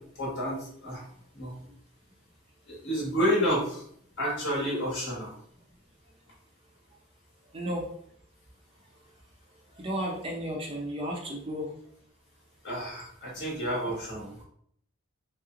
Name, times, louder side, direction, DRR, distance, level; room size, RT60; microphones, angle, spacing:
voice 1, 0.1-1.0 1.3-1.5 2.7-3.8 4.2-5.3 12.6-14.3, equal, 55° left, -4 dB, 1.3 m, -30 dB
voice 2, 7.5-7.8 9.8-11.7 12.7-12.9, equal, 25° right, -1 dB, 0.6 m, -33 dB
3.2 x 3.0 x 2.4 m, 0.65 s
head